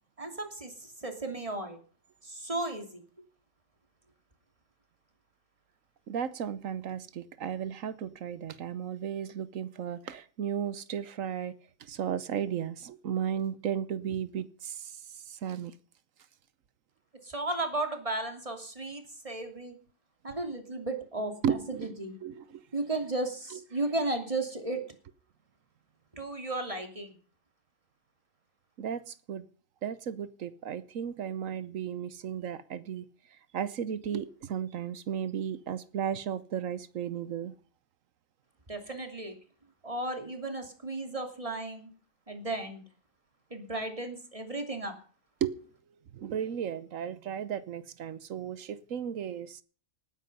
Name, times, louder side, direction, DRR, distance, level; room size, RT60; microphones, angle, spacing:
voice 1, 0.2-1.8 2.2-3.0 17.2-19.8 20.2-22.1 22.7-24.8 26.1-27.2 34.1-34.2 38.7-39.4 39.8-41.9 42.3-42.8 43.5-44.9, right 2 dB, 25° right, 5 dB, 2.8 m, -34 dB
voice 2, 6.1-15.7 21.4-21.9 22.2-22.6 23.5-23.6 28.8-29.5 29.8-33.1 33.5-37.5 45.4-45.6 46.1-49.6, right 8 dB, 80° right, 16 dB, 1.3 m, -34 dB
19.0 x 10.0 x 5.4 m, 0.41 s
omnidirectional pair, 1.3 m